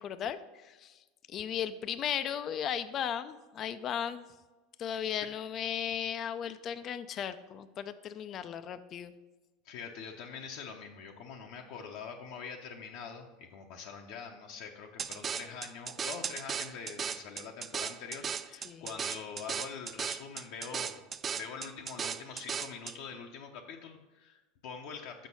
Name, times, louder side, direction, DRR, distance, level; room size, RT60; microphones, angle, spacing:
voice 1, 0.0-4.2 4.8-9.1 18.6-18.9, left 9 dB, 40° left, 12 dB, 0.4 m, -36 dB
voice 2, 9.6-21.0 21.3-25.3, left 6 dB, 65° left, 1 dB, 0.7 m, -44 dB
sound 1, 15.0-23.0, right 7 dB, 30° right, 0.3 m, -37 dB
6.3 x 6.0 x 5.5 m, 1.2 s
supercardioid pair, 115°, 0 cm